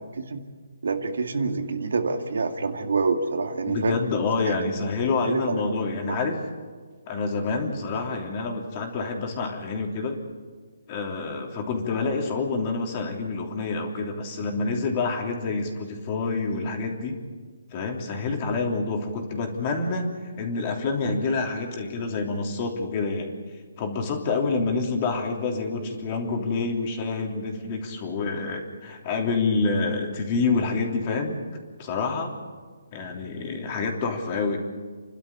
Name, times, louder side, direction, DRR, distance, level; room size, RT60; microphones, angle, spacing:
voice 1, 0.8-4.0 4.4-4.5 5.2-6.2, right 4 dB, 75° right, 5 dB, 2.4 m, -27 dB
voice 2, 3.7-6.4 7.1-10.2 10.9-17.2 17.7-20.0 20.4-23.3 23.8-31.4 31.8-32.3 32.9-34.6, left 4 dB, 30° left, 2 dB, 3.2 m, -27 dB
30.0 x 12.5 x 8.5 m, 1.5 s
hypercardioid pair, 165°, 0 cm